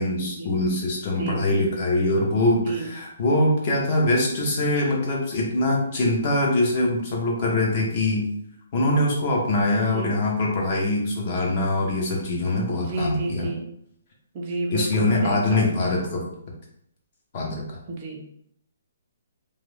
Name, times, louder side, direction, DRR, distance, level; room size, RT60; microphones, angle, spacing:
voice 1, 0.0-8.3 8.7-13.5 14.7-16.2 17.3-17.6, left 2 dB, 35° left, -1 dB, 0.7 m, -23 dB
voice 2, 1.2-1.7 2.6-2.9 9.8-10.1 12.8-13.7 14.3-15.9 17.9-18.2, right 2 dB, 25° right, 1 dB, 0.4 m, -31 dB
2.4 x 2.0 x 3.1 m, 0.71 s
hypercardioid pair, 170°, 0 cm